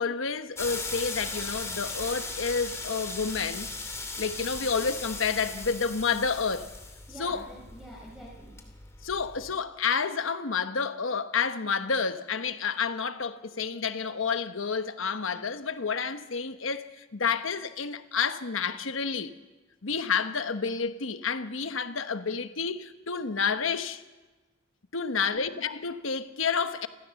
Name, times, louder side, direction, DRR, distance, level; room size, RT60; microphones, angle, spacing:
voice 1, 0.0-3.7 4.2-6.7 7.2-7.4 9.0-19.3 19.8-24.0 24.9-26.9, left 5 dB, 85° left, 1.1 m, -30 dB
sound 1, 0.6-9.5, left 3 dB, 15° left, 2.6 m, -38 dB
voice 2, 7.1-8.6 25.0-25.6, equal, ahead, 4.5 m, -47 dB
28.0 x 16.0 x 7.0 m
head